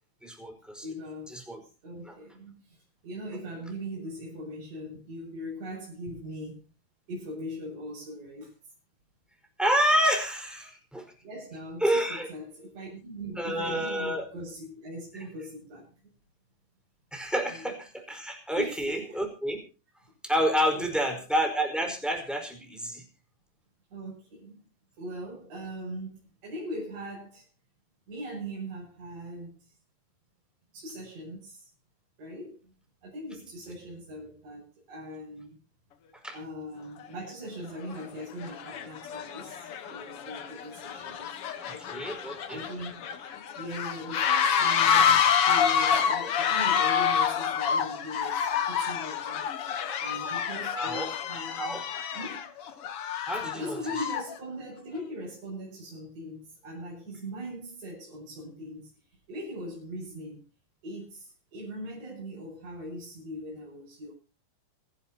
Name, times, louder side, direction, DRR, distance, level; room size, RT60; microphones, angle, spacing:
voice 1, 0.2-0.8 1.3-1.6 9.6-11.0 11.8-12.3 13.4-14.3 17.1-19.6 20.2-23.0 36.2-36.3 41.9-42.6 50.7-51.1 51.6-51.8 53.2-53.8, equal, ahead, 3 dB, 4.4 m, -28 dB
voice 2, 0.8-6.7 7.1-8.5 10.6-10.7 11.2-15.9 17.2-17.7 18.5-19.2 20.7-21.2 23.9-24.6 25.0-27.5 28.1-29.7 30.7-31.7 32.2-32.7 33.0-35.6 36.3-41.4 41.7-49.4 50.0-51.9 52.1-52.5 53.5-58.9 59.3-60.4 60.8-64.1, equal, 50° right, -5 dB, 9.0 m, -40 dB
sound 1, 37.0-37.1 37.8-38.0 38.4-54.4, left 7 dB, 60° left, 1.5 m, -28 dB
27.5 x 11.5 x 2.9 m, 0.34 s
omnidirectional pair, 4.2 m